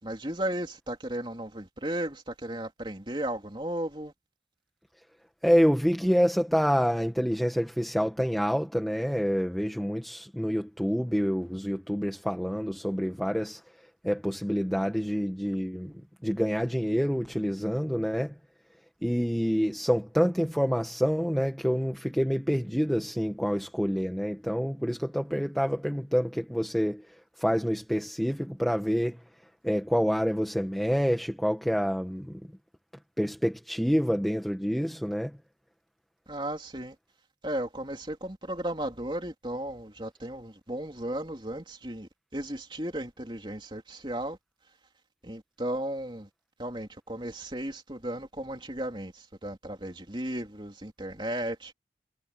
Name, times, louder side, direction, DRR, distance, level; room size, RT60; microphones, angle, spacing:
voice 1, 0.0-4.1 36.3-37.0 37.4-44.4 45.2-46.3 46.6-51.7, right 1 dB, 25° right, 3.4 m, -35 dB
voice 2, 5.4-13.6 14.0-15.9 16.2-18.3 19.0-27.0 27.4-29.2 29.6-32.4 33.2-35.3, equal, ahead, 1.8 m, -27 dB
head